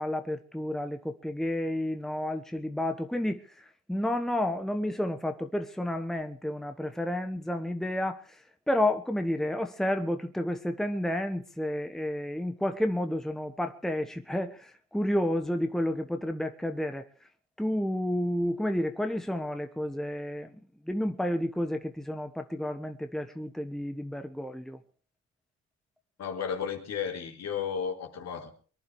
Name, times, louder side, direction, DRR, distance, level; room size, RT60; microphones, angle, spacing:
voice 1, 0.0-17.1 17.6-20.6 20.8-24.8, left 1 dB, ahead, 1.2 m, -31 dB
voice 2, 26.2-28.5, left 7 dB, 60° left, 3.9 m, -33 dB
23.0 x 10.5 x 4.8 m
cardioid pair, 90°, 30 cm